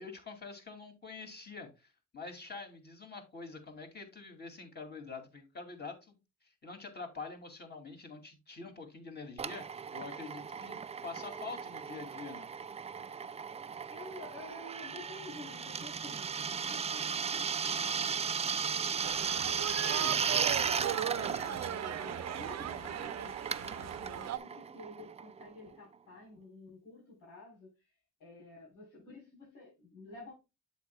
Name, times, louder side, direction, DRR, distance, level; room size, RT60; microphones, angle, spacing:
voice 1, 0.0-12.5, left 4 dB, 35° left, 2.5 m, -46 dB
Drill, 9.4-25.7, right 6 dB, 20° right, 0.3 m, -36 dB
voice 2, 13.9-27.9 28.2-30.3, left 2 dB, 85° left, 3.9 m, -51 dB
sound 1, 19.0-24.4, right 11 dB, 60° right, 0.6 m, -38 dB
8.2 x 7.5 x 2.2 m
cardioid pair, 90°, 30 cm